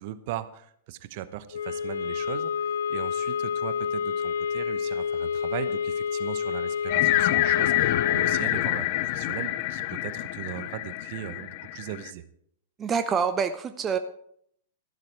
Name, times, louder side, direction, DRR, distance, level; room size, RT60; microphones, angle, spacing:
voice 1, 0.0-2.5 2.9-12.2, right 13 dB, 50° right, 13 dB, 1.0 m, -38 dB
sound 1, 1.5-8.5, left 7 dB, 75° left, 0.4 m, -29 dB
sound 2, 6.9-12.1, left 16 dB, 50° left, 0.7 m, -26 dB
voice 2, 12.8-14.0, right 6 dB, 25° right, 10 dB, 0.7 m, -26 dB
13.5 x 12.0 x 4.7 m, 0.68 s
figure-of-eight pair, 105°, 0 cm